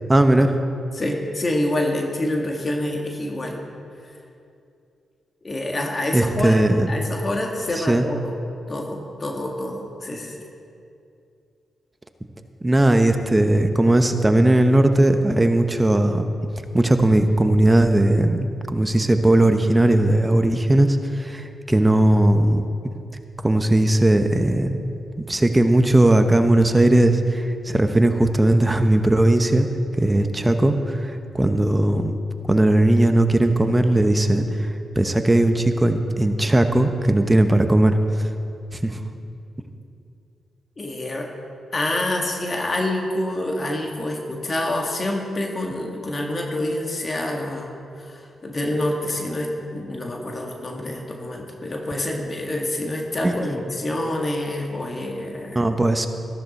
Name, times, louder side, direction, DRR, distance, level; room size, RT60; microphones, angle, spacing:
voice 1, 0.1-0.6 6.1-6.9 7.7-8.0 12.6-16.3 16.7-18.4 18.7-22.6 23.4-24.8 25.2-29.7 29.9-32.2 32.4-38.3 38.7-39.0 53.2-53.6 55.5-56.1, right 1 dB, 20° right, 7 dB, 1.0 m, -18 dB
voice 2, 0.9-3.6 5.4-6.6 6.9-8.4 8.7-10.4 40.8-41.3 41.7-55.6, left 1 dB, 40° left, 1 dB, 1.7 m, -27 dB
14.0 x 13.5 x 4.2 m, 2.6 s
cardioid pair, 60°, 0 cm